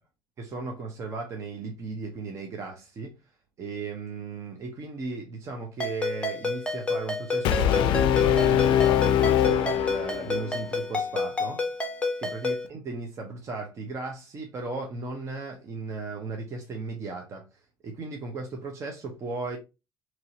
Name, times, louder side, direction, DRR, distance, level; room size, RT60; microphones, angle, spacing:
voice 1, 0.4-3.1 3.6-11.6 12.2-19.6, right 3 dB, 35° right, 0.7 m, -36 dB
Ringtone, 5.8-12.7, left 2 dB, 10° left, 0.8 m, -30 dB
Brass instrument, 7.4-10.5, left 10 dB, 65° left, 0.4 m, -22 dB
4.4 x 3.0 x 2.7 m
cardioid pair, 150°, 9 cm